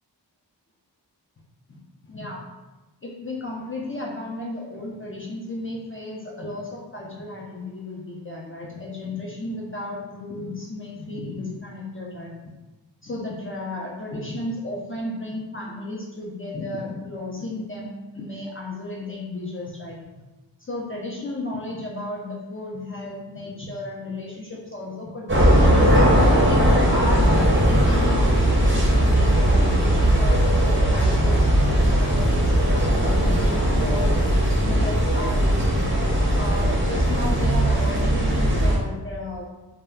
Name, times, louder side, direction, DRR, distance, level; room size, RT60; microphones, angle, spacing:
voice 1, 1.7-2.4 3.0-12.3 13.0-20.0 20.6-25.7 26.1-34.2 34.5-35.9 36.2-39.5, left 2 dB, 30° left, -3 dB, 0.5 m, -33 dB
sound 1, 25.3-38.8, equal, 25° right, 0.7 m, -19 dB
2.2 x 2.1 x 3.4 m, 1.1 s
wide cardioid pair, 50°, 44 cm